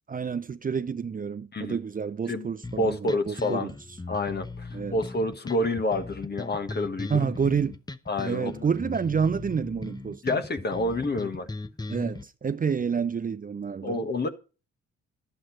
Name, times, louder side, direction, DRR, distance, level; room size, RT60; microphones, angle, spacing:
voice 1, 0.1-3.7 4.7-5.0 7.1-7.8 8.3-10.4 11.9-14.0, right 6 dB, 30° right, 0.6 m, -29 dB
sound 1, 2.6-12.2, left 3 dB, 15° left, 0.8 m, -38 dB
voice 2, 2.8-3.7 4.1-7.1 8.1-8.7 10.2-11.5 13.8-14.3, left 2 dB, 35° left, 1.4 m, -28 dB
11.0 x 7.9 x 4.5 m
cardioid pair, 90°, 30 cm